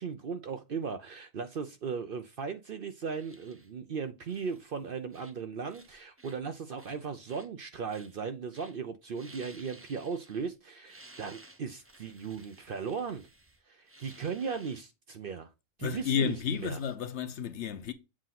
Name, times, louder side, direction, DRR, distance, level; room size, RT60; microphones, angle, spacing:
voice 1, 0.0-13.3 13.7-15.5 15.8-16.8, right 5 dB, 55° right, 0.7 m, -37 dB
sound 1, 3.0-3.7 4.2-4.8 5.1-5.4 5.7-6.4 6.8-7.5 7.9-8.2 8.5-8.8 9.1-10.5 10.8-14.8 15.9-16.9, right 2 dB, 20° right, 0.3 m, -56 dB
voice 2, 15.8-17.9, left 7 dB, 65° left, 0.9 m, -32 dB
7.4 x 2.5 x 5.7 m
omnidirectional pair, 1.4 m